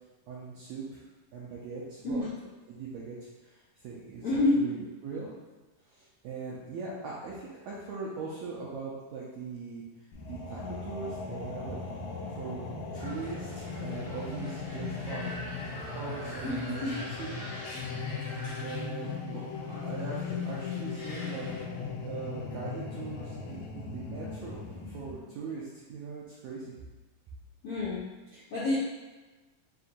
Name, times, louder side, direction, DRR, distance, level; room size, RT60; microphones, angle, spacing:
voice 1, 0.3-1.0 1.3-2.2 2.7-5.3 5.9-9.8 10.3-11.8 12.4-12.6 12.9-15.3 15.8-17.5 18.6-26.7, right 4 dB, 90° right, -6 dB, 1.6 m, -41 dB
voice 2, 4.2-4.6 16.4-16.9 27.6-28.0 28.3-28.8, left 2 dB, 75° left, -11 dB, 1.3 m, -28 dB
sound 1, 10.1-25.1, left 4 dB, 90° left, 2.4 m, -38 dB
sound 2, 12.9-21.6, equal, 55° left, 1.7 m, -45 dB
5.8 x 2.8 x 2.6 m, 1.2 s
omnidirectional pair, 4.0 m